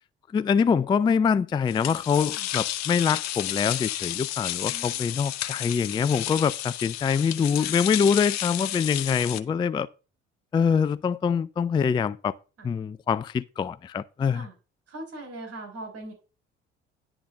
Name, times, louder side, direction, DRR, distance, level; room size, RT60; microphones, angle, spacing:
voice 1, 0.3-9.9 10.5-12.3 12.6-14.4, left 6 dB, 15° left, 0.3 m, -24 dB
sound 1, 1.7-9.4, left 13 dB, 55° left, 0.8 m, -32 dB
voice 2, 4.7-5.3 7.6-7.8 9.3-9.4 12.6-12.7 14.3-14.5 14.9-16.1, right 2 dB, 45° right, 3.5 m, -41 dB
10.0 x 3.9 x 7.3 m
figure-of-eight pair, 55°, 34 cm